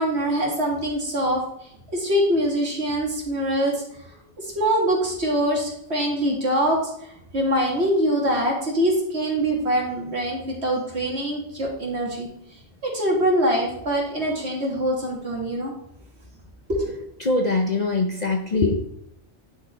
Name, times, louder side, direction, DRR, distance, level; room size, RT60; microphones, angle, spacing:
voice 1, 0.0-1.4 1.9-3.8 4.4-12.3 12.8-15.7 16.7-17.0, equal, 60° right, -2 dB, 2.4 m, -24 dB
voice 2, 17.2-18.8, left 3 dB, 40° left, 3 dB, 0.7 m, -22 dB
10.5 x 4.9 x 4.4 m, 0.75 s
omnidirectional pair, 1.3 m